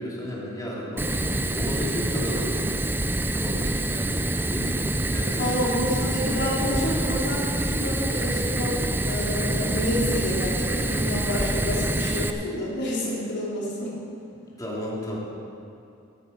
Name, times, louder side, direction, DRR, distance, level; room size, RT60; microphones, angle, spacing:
voice 1, 0.0-2.7 3.4-4.2 4.5-4.8 5.1-5.9 14.6-15.2, equal, 15° left, -5 dB, 2.7 m, -33 dB
Fire, 1.0-12.3, right 1 dB, 10° right, 0.5 m, -26 dB
voice 2, 5.4-13.9, left 1 dB, 55° left, -5 dB, 3.4 m, -28 dB
12.5 x 11.0 x 5.5 m, 2.6 s
head